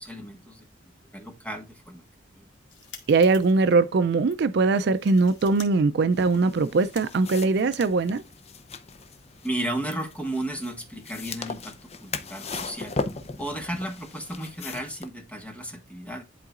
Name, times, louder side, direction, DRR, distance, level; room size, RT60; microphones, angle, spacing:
voice 1, 0.0-2.0 2.4-2.5 9.4-13.0 13.4-16.2, right 1 dB, 5° left, 1.4 m, -34 dB
sound 1, 2.5-3.8 4.2-4.4 4.8-5.7 5.9-7.9, left 6 dB, 70° left, 1.9 m, -49 dB
voice 2, 3.1-8.2, right 3 dB, 60° right, 0.4 m, -21 dB
sound 2, 6.1-15.1, left 3 dB, 35° left, 0.6 m, -38 dB
11.0 x 3.9 x 2.4 m
head